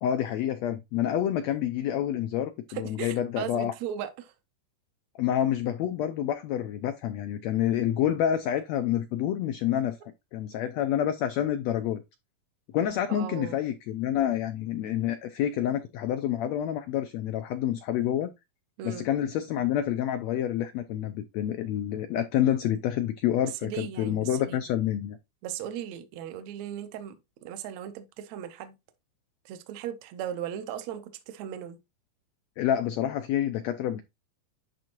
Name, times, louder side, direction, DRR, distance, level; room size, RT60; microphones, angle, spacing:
voice 1, 0.0-3.7 5.2-12.0 12.7-18.3 18.8-25.2 32.6-34.0, left 10 dB, 85° left, 1.5 m, -28 dB
voice 2, 2.7-4.3 13.1-13.6 18.8-19.1 23.6-24.6 25.4-28.8 29.5-31.8, right 9 dB, 70° right, 1.8 m, -37 dB
10.5 x 3.5 x 2.9 m
omnidirectional pair, 3.7 m